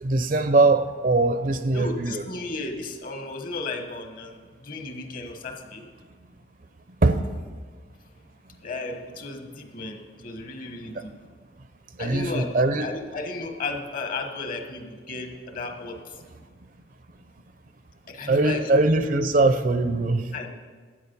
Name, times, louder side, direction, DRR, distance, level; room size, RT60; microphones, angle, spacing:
voice 1, 0.0-2.2 7.0-7.2 12.0-12.9 18.3-20.2, right 2 dB, 50° right, 10 dB, 0.7 m, -21 dB
voice 2, 1.7-5.8 8.6-11.2 12.0-16.2 18.1-18.7 20.3-20.5, left 3 dB, 50° left, 5 dB, 1.4 m, -34 dB
12.5 x 9.1 x 5.5 m, 1.5 s
head